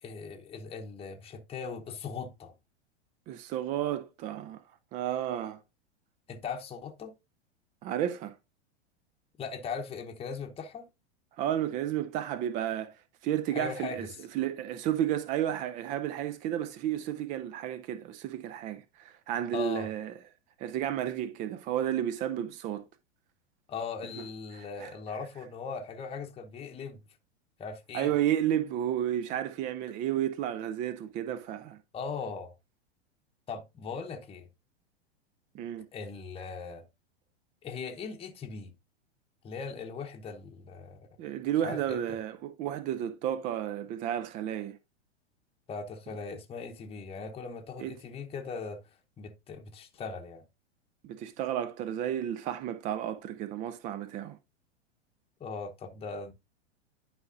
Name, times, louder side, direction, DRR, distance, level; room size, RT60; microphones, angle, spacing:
voice 1, 0.0-2.5 6.3-7.1 9.4-10.9 13.5-14.1 19.5-19.9 23.7-27.0 27.6-28.1 31.9-32.5 33.5-34.5 35.9-36.8 37.6-38.7 39.4-41.1 41.6-42.0 45.7-48.8 49.2-50.4 55.4-56.3, left 5 dB, 15° left, 0.8 m, -39 dB
voice 2, 3.3-4.6 4.9-5.6 7.8-8.4 11.4-14.1 14.3-20.1 20.6-22.8 24.5-24.9 27.9-31.8 35.5-35.9 41.2-44.8 47.8-48.0 51.0-54.4, right 11 dB, 25° right, 0.3 m, -32 dB
11.0 x 4.7 x 2.5 m
hypercardioid pair, 100°, 34 cm